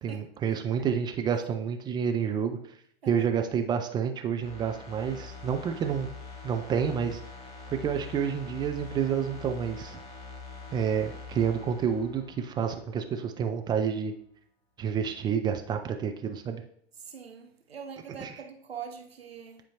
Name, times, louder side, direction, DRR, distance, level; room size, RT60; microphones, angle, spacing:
voice 1, 0.0-2.6 3.1-6.1 6.4-7.2 7.7-10.0 10.7-14.1 14.8-16.6 18.1-18.5, right 7 dB, 15° right, 0.3 m, -29 dB
sound 1, 4.4-13.1 13.4-13.6, left 4 dB, 20° left, 1.3 m, -45 dB
voice 2, 17.1-19.6, right 7 dB, 80° right, 0.8 m, -43 dB
9.8 x 4.3 x 2.9 m
figure-of-eight pair, 95°, 30 cm